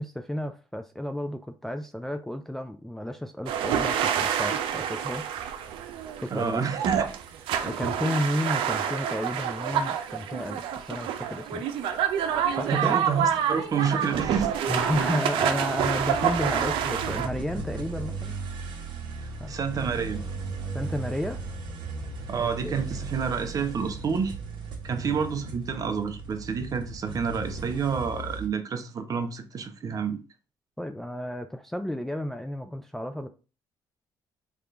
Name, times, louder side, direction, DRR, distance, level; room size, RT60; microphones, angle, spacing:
voice 1, 0.0-5.3 6.2-6.7 7.6-11.7 12.6-13.0 14.7-18.4 19.4-19.6 20.7-21.4 22.4-22.8 30.8-33.3, left 1 dB, 5° left, 0.4 m, -32 dB
sound 1, 3.5-17.3, right 9 dB, 85° right, 0.5 m, -28 dB
voice 2, 6.3-7.0 12.7-14.5 19.2-20.2 22.3-24.3 24.8-30.2, right 6 dB, 45° right, 0.7 m, -29 dB
sound 2, 12.1-13.2 13.9-14.0 15.2-28.5, right 4 dB, 65° right, 1.3 m, -37 dB
3.5 x 2.5 x 4.4 m
cardioid pair, 105°, 9 cm